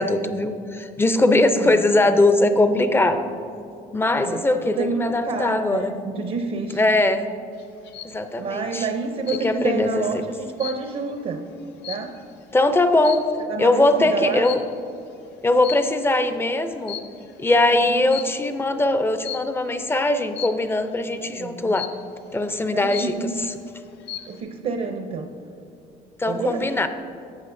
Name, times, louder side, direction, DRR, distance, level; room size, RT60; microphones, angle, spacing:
voice 1, 0.0-3.3 3.9-5.9 6.8-7.3 8.0-8.9 9.4-10.0 12.5-13.2 13.6-14.6 15.4-17.0 17.4-21.9 22.3-23.1 26.2-26.9, left 2 dB, 15° left, 9 dB, 0.5 m, -20 dB
voice 2, 4.2-6.8 8.4-11.4 11.9-12.2 13.5-14.5 17.7-18.1 21.1-21.8 22.7-23.2 24.3-25.3 26.3-26.6, right 4 dB, 50° right, 5 dB, 0.7 m, -29 dB
sound 1, 7.6-8.2 9.3-9.8 10.2-12.4 13.0-13.4 14.4-14.8 15.6-16.2 16.7-17.4 18.1-18.5 19.2-19.6 20.4-20.8 21.8-22.2 22.6-22.7 22.9-23.5 23.9-24.4, left 10 dB, 80° left, 0.8 m, -36 dB
12.0 x 7.9 x 2.6 m, 2.6 s
cardioid pair, 110°, 17 cm